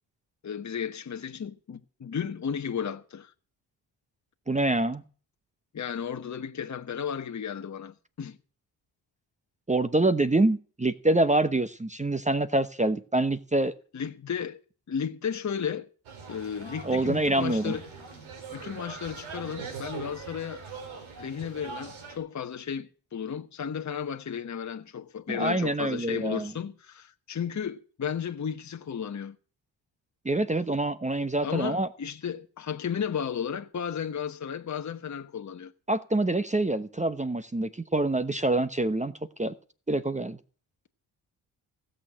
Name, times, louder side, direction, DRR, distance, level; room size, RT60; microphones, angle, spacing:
voice 1, 0.4-3.3 5.7-8.4 13.9-14.6 14.9-15.9 16.3-17.9 18.5-20.6 21.2-29.4 31.4-35.7, left 7 dB, 35° left, 1.1 m, -34 dB
voice 2, 4.5-5.0 9.7-13.7 16.8-17.7 25.3-26.5 30.2-31.9 35.9-39.1 39.4-39.5 39.9-40.4, right 2 dB, 15° right, 1.0 m, -26 dB
sound 1, 16.0-22.2, right 5 dB, 80° right, 3.4 m, -42 dB
16.5 x 6.7 x 7.4 m
supercardioid pair, 55°, 47 cm